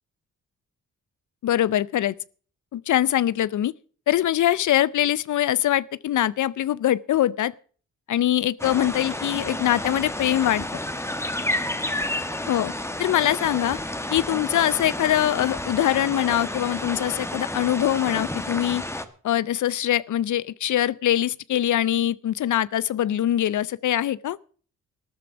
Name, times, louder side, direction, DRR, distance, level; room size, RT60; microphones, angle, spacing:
voice 1, 1.4-2.1 2.7-3.7 4.1-7.5 8.1-10.6 12.5-12.7 13.0-13.8 14.1-18.8 19.2-24.4, left 12 dB, 75° left, 0.5 m, -23 dB
sound 1, 8.6-19.0, left 1 dB, 10° left, 1.4 m, -30 dB
13.0 x 10.5 x 6.2 m
cardioid pair, 85°, 30 cm